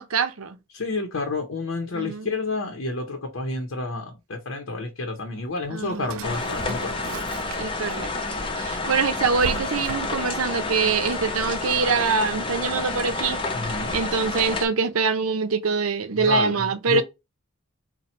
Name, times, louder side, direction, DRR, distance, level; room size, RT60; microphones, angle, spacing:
voice 1, 0.0-0.6 1.9-2.3 5.7-6.3 7.6-8.1 8.6-13.4 13.9-17.0, right 5 dB, 80° right, 0.7 m, -24 dB
voice 2, 0.7-7.1 13.5-14.0 16.1-17.0, left 3 dB, 65° left, 0.8 m, -30 dB
Drawer open or close, 5.4-7.9 8.4-10.4, right 6 dB, 65° right, 0.3 m, -38 dB
sound 1, 6.2-14.7, left 3 dB, 25° left, 0.7 m, -29 dB
4.2 x 2.2 x 4.2 m
head